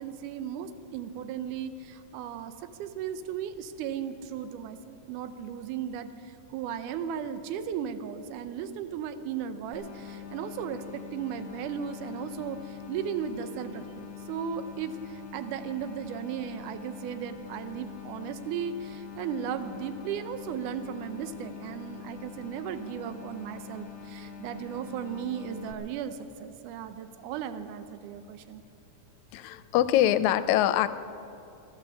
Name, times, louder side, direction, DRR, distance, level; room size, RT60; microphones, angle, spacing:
voice 1, 0.0-2.5 2.8-28.6, right 8 dB, 85° right, 10 dB, 2.2 m, -36 dB
sound 1, 9.7-25.7, left 8 dB, 50° left, 1.7 m, -44 dB
voice 2, 29.3-30.9, left 12 dB, 80° left, 13 dB, 1.8 m, -23 dB
15.0 x 12.0 x 6.9 m, 2.7 s
omnidirectional pair, 3.6 m